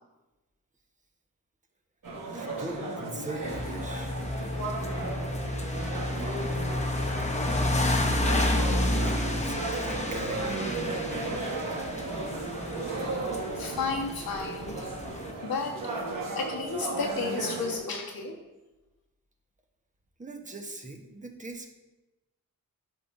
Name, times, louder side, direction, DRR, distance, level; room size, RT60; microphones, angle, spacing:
sound 1, 2.0-17.8, right 2 dB, 65° right, 1.5 m, -35 dB
voice 1, 2.3-4.2 7.0-7.1 7.8-7.9 8.4-8.5 9.0-10.7 20.2-21.7, right 2 dB, 20° right, 4 dB, 1.1 m, -41 dB
sound 2, 3.4-15.3, left 1 dB, 20° left, 0.9 m, -30 dB
voice 2, 13.6-14.9 15.4-15.8 16.3-18.3, left 4 dB, 80° left, -1 dB, 1.5 m, -32 dB
11.0 x 5.7 x 2.6 m, 1.0 s
cardioid pair, 75°, 35 cm